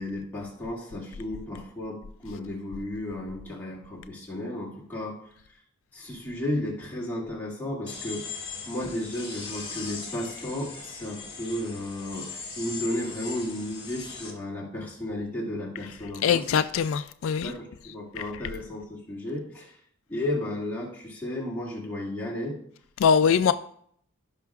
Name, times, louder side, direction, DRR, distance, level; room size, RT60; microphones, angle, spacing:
voice 1, 0.0-5.2 5.9-8.3 8.7-16.5 17.4-19.8 20.1-22.6, left 1 dB, 10° left, 2.2 m, -33 dB
sound 1, 7.9-14.3, left 5 dB, 25° left, 1.9 m, -39 dB
voice 2, 16.2-17.5 23.0-23.5, left 7 dB, 65° left, 0.3 m, -22 dB
16.0 x 5.6 x 2.4 m
head